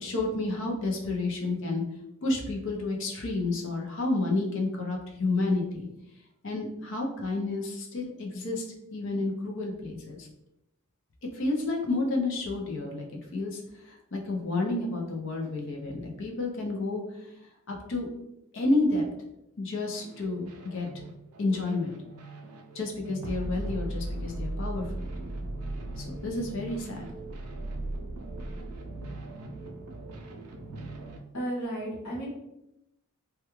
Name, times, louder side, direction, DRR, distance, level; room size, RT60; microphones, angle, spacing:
voice 1, 0.0-1.8 2.2-5.9 6.4-10.3 11.3-13.1 13.3-17.3 17.7-18.1 18.5-19.0 19.6-20.5 20.7-21.0 21.4-21.9 22.7-25.1 26.0-27.1, left 2 dB, 55° left, 0 dB, 0.5 m, -30 dB
sound 1, 19.9-31.2, right 1 dB, 90° right, 0.4 m, -38 dB
voice 2, 31.3-32.3, right 1 dB, 90° left, -7 dB, 1.0 m, -33 dB
2.3 x 2.2 x 2.9 m, 0.86 s
head